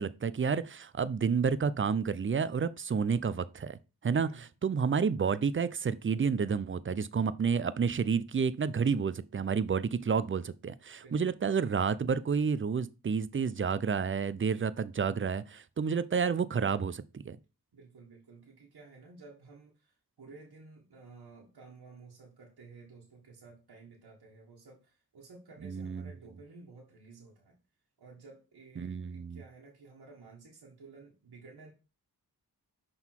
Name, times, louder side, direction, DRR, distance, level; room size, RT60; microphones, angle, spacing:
voice 1, 0.0-17.4 25.6-26.1 28.8-29.4, right 6 dB, 30° right, 0.5 m, -30 dB
voice 2, 11.0-11.3 17.7-27.6 28.0-31.7, right 4 dB, 75° right, 1.6 m, -53 dB
5.8 x 3.9 x 4.5 m
cardioid pair, 50°, 39 cm